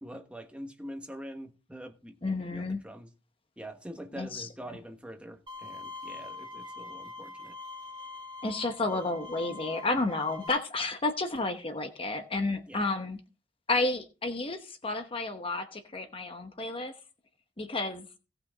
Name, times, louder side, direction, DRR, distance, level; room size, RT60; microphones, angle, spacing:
voice 1, 0.0-3.1 3.6-7.5 12.7-12.8, equal, 5° right, 1.3 m, -44 dB
voice 2, 2.2-2.8 4.2-4.5 8.4-13.2 13.7-16.9 17.6-18.0, left 2 dB, 30° left, 1.0 m, -31 dB
Bowed string instrument, 5.5-10.5, left 3 dB, 25° right, 2.8 m, -43 dB
17.5 x 6.0 x 3.9 m
head